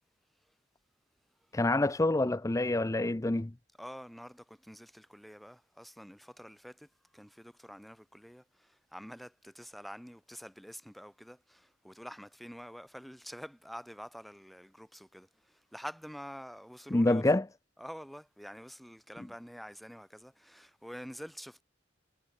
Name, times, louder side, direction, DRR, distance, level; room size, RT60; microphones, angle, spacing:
voice 1, 1.5-3.5 16.9-17.5, left 2 dB, 15° left, 0.5 m, -27 dB
voice 2, 3.8-6.9 7.1-17.2 17.8-21.6, equal, ahead, 4.8 m, -47 dB
head